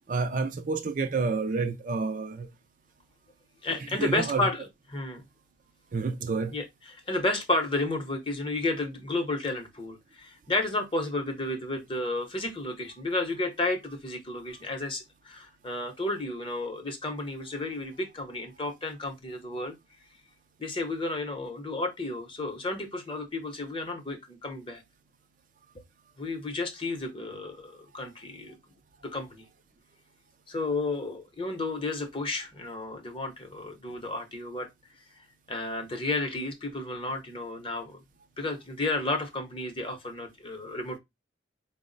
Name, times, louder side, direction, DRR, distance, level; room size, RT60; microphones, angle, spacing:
voice 1, 0.1-2.5 3.7-4.5 5.9-6.5, right 4 dB, 40° right, 0.3 m, -29 dB
voice 2, 3.6-4.6 4.9-5.2 6.5-19.7 20.6-24.8 26.2-28.6 29.0-29.4 30.5-34.7 35.5-38.0 38.4-41.0, left 2 dB, 25° left, 0.7 m, -32 dB
4.5 x 2.0 x 3.8 m
head